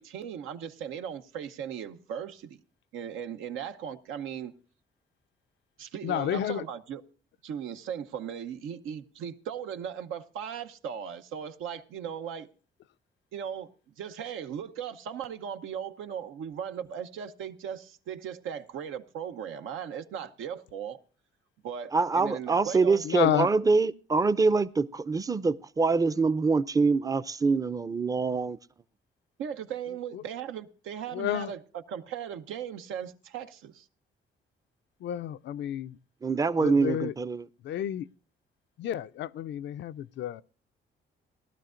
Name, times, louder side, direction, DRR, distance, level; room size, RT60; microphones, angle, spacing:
voice 1, 0.0-2.6 2.9-4.5 5.8-7.0 7.4-12.5 13.3-13.7 14.0-21.0 21.6-23.0 23.6-23.7 29.4-31.6 31.9-33.9, right 8 dB, 85° right, 0.8 m, -37 dB
voice 2, 6.0-6.6 23.0-23.5 30.1-30.2 31.1-31.5 35.0-36.0 36.6-37.1 37.6-38.1 38.8-40.4, left 11 dB, 65° left, 0.4 m, -30 dB
voice 3, 21.9-28.6 36.2-37.4, right 4 dB, 15° right, 0.5 m, -25 dB
18.5 x 12.0 x 2.5 m
cardioid pair, 90°, 20 cm